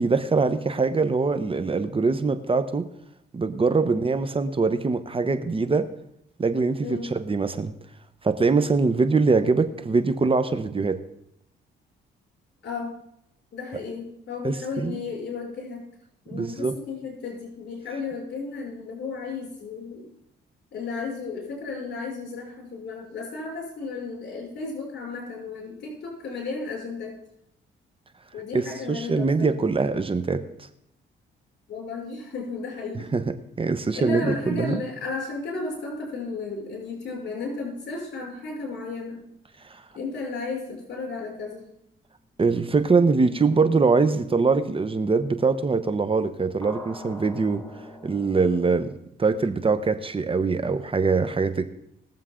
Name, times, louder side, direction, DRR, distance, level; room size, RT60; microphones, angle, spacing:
voice 1, 0.0-2.9 3.3-5.9 6.4-7.7 8.2-11.0 14.4-15.0 16.3-16.8 28.5-30.4 33.1-33.2 33.6-34.8 39.6-39.8 42.4-47.6 48.0-48.9 49.2-51.6, right 4 dB, 25° right, 10 dB, 1.0 m, -23 dB
voice 2, 6.8-7.1 12.6-13.0 13.5-15.8 16.2-20.1 20.7-27.2 28.3-29.5 31.7-33.1 33.9-39.2 39.9-41.7, left 4 dB, 60° left, -2 dB, 6.2 m, -34 dB
sound 1, 46.6-48.9, equal, 10° left, 1.7 m, -43 dB
20.5 x 7.3 x 3.8 m, 0.75 s
cardioid pair, 90°, 20 cm